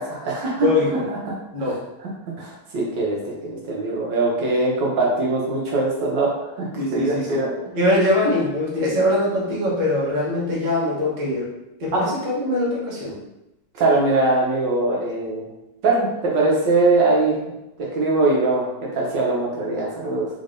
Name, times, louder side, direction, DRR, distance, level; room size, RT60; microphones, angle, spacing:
voice 1, 0.0-2.1 2.4-6.3 6.5-6.7 6.9-7.5 11.9-12.0 13.8-15.5 15.8-17.3 17.8-18.7 18.9-20.3, right 2 dB, 65° right, -3 dB, 1.2 m, -22 dB
voice 2, 0.6-0.9 1.5-1.8 6.7-7.4 7.7-11.4 11.8-13.2, left 1 dB, 40° right, -5 dB, 0.6 m, -22 dB
3.6 x 3.6 x 2.5 m, 0.92 s
omnidirectional pair, 2.4 m